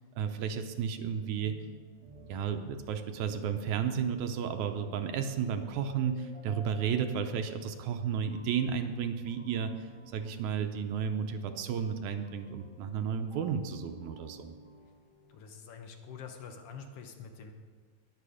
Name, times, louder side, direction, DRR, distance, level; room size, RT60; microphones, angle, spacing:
voice 1, 0.2-1.6 2.3-14.6, right 7 dB, 75° right, 7 dB, 2.1 m, -33 dB
sound 1, 1.0-15.4, right 2 dB, 5° left, 1.5 m, -53 dB
voice 2, 15.3-17.5, left 6 dB, 60° left, 5 dB, 1.7 m, -46 dB
19.5 x 7.5 x 5.0 m, 1.6 s
omnidirectional pair, 3.5 m